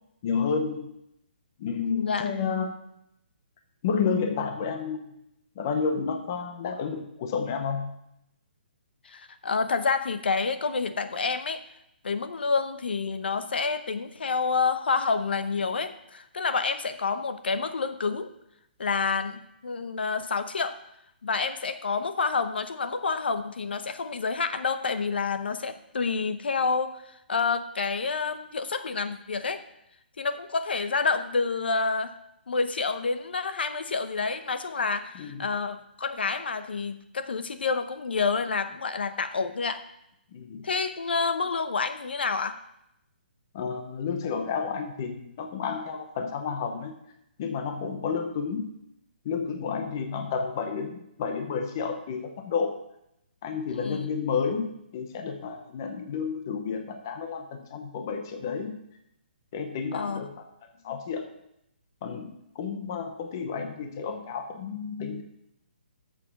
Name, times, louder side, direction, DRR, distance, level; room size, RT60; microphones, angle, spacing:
voice 1, 0.2-1.0 1.6-2.7 3.8-5.1 5.6-8.0 35.1-35.5 40.3-40.7 43.5-47.0 47.4-48.7 49.2-52.8 53.4-58.8 59.5-60.4 60.8-61.3 62.0-65.2, left 5 dB, 20° left, 6 dB, 0.6 m, -31 dB
voice 2, 1.8-2.3 9.0-11.6 12.0-18.3 18.8-20.8 21.2-29.6 30.2-32.2 32.5-39.8 40.6-42.6 53.7-54.1 59.9-60.2, left 4 dB, 70° left, 10 dB, 0.9 m, -28 dB
8.5 x 6.9 x 5.8 m, 0.81 s
hypercardioid pair, 180°, 6 cm